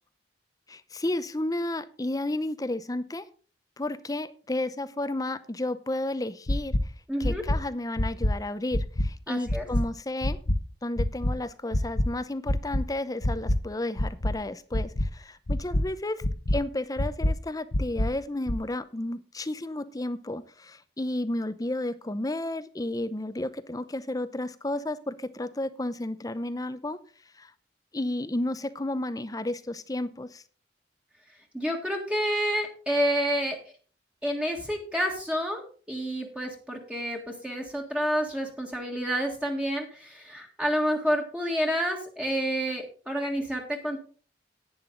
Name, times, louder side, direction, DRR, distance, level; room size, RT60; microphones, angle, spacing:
voice 1, 0.7-3.3 3.8-6.8 7.2-10.4 10.8-16.2 16.5-27.0 27.4-27.5 27.9-30.4, left 1 dB, 20° left, 14 dB, 0.7 m, -32 dB
sound 1, 6.5-6.8 7.2-7.6 8.0-8.3 8.7-9.1 9.5-9.8 10.2-10.6 11.0-11.3 11.7-12.1 12.5-12.8 13.2-13.6 14.0-14.3 14.7-15.1 15.5-15.8 16.2-16.6 17.0-17.3 17.7-18.1 18.5-18.6, left 1 dB, 60° left, 1.2 m, -25 dB
voice 2, 7.1-7.4 9.3-9.7 31.5-33.6 34.2-44.0, equal, 5° right, 0 dB, 1.8 m, -29 dB
11.0 x 9.5 x 3.9 m, 0.40 s
head